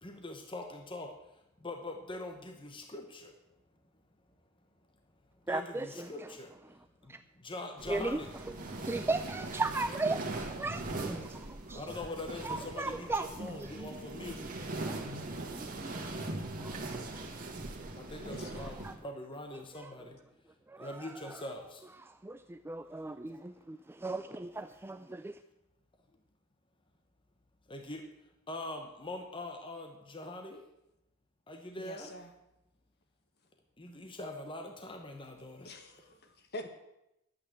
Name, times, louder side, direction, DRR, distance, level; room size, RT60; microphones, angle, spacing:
voice 1, 0.0-1.1 1.6-3.3 5.5-6.5 7.4-8.3 11.7-14.4 18.0-20.2 20.8-21.8 27.7-28.0 28.5-30.6 31.5-32.1 33.8-35.7, left 2 dB, 25° left, 1.1 m, -43 dB
voice 2, 5.5-6.3 7.1-7.2 7.9-8.2 8.5-11.9 12.4-13.7 14.3-14.5 14.8-15.0 15.5-17.3 17.8-17.9 18.4-19.0 19.5-19.9 20.7-21.4 22.0-25.4, right 3 dB, 10° right, 0.4 m, -38 dB
sound 1, 7.8-19.0, right 2 dB, 40° right, 2.0 m, -40 dB
voice 3, 31.8-32.3 35.6-36.7, left 1 dB, 50° left, 1.7 m, -45 dB
11.5 x 8.8 x 7.3 m
head